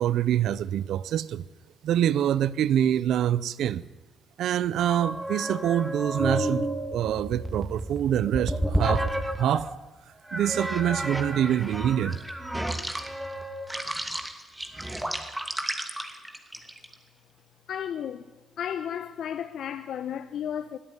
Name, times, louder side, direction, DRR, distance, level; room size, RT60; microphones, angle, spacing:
voice 1, 0.0-1.4 1.8-3.8 4.4-9.1 9.4-9.7 10.3-12.2, right 10 dB, 75° right, 0.7 m, -25 dB
sound 1, 4.8-9.7 10.3-16.9, right 1 dB, 10° right, 2.5 m, -31 dB
voice 2, 17.7-18.3 18.6-20.8, left 9 dB, 70° left, 0.9 m, -33 dB
21.5 x 13.0 x 9.9 m
cardioid pair, 90°, 0 cm